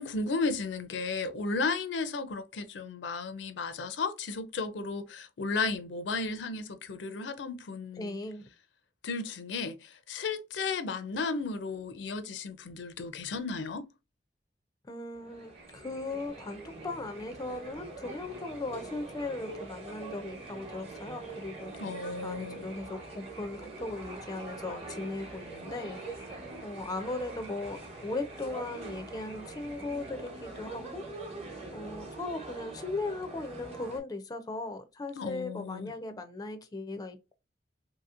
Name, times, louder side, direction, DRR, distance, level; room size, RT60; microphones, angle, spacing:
voice 1, 0.0-8.2 9.0-13.9 21.8-22.7 35.2-35.9, left 4 dB, 80° left, 0.5 m, -34 dB
voice 2, 8.0-8.5 14.9-21.7 22.2-31.0 31.7-37.2, left 2 dB, 20° left, 0.4 m, -38 dB
sound 1, 15.2-34.0, right 3 dB, 35° right, 1.0 m, -44 dB
sound 2, 15.5-30.1, right 3 dB, 75° right, 1.2 m, -55 dB
2.8 x 2.7 x 2.4 m
head